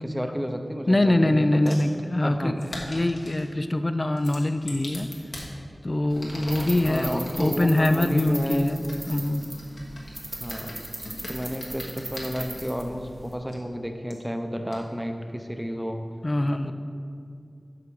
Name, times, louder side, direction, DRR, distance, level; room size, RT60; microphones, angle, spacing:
voice 1, 0.0-1.8 2.2-2.6 6.9-8.7 10.4-10.7 11.3-16.0 16.6-16.7, equal, 5° right, 5 dB, 0.8 m, -31 dB
voice 2, 0.9-2.5 2.8-5.1 5.8-9.4 16.2-16.7, left 1 dB, 40° left, 9 dB, 0.5 m, -23 dB
sound 1, 1.7-1.9 2.6-3.5 4.2-5.5 6.1-7.5 8.3-12.7 13.5-13.6 14.1-14.2 14.7-14.8, left 1 dB, 80° left, 1.5 m, -40 dB
sound 2, 6.1-13.3, right 1 dB, 50° right, 1.2 m, -39 dB
8.7 x 5.7 x 4.8 m, 2.4 s
wide cardioid pair, 50°, 0 cm